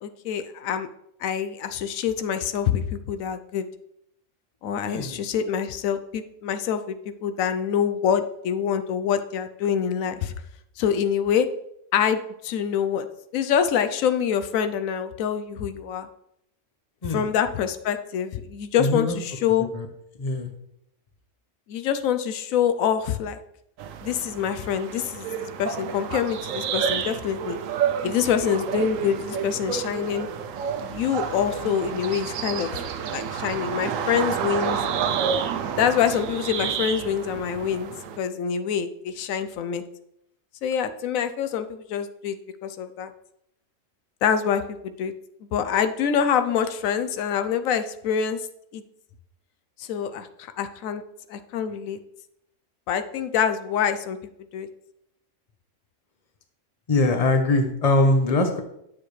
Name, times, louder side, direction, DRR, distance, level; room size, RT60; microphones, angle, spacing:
voice 1, 0.0-0.9 1.2-3.7 4.6-10.3 10.8-11.5 11.9-13.1 13.3-16.1 17.1-19.7 21.7-23.4 24.0-25.3 25.6-27.6 28.0-30.3 30.8-32.7 33.1-34.8 35.8-37.9 38.2-39.8 40.6-42.4 42.6-43.1 44.2-45.1 45.5-48.4 48.7-48.8 49.8-51.0 51.3-52.0 52.9-54.2 54.5-54.7, left 8 dB, 85° left, 10 dB, 1.0 m, -25 dB
voice 2, 4.9-5.2 17.0-17.3 18.8-19.2 19.7-19.9 20.2-20.5 56.9-58.6, left 2 dB, 30° left, 6 dB, 0.9 m, -22 dB
sound 1, 23.8-38.2, right 7 dB, 75° right, 1.0 m, -30 dB
9.5 x 6.7 x 3.2 m, 0.77 s
omnidirectional pair, 1.4 m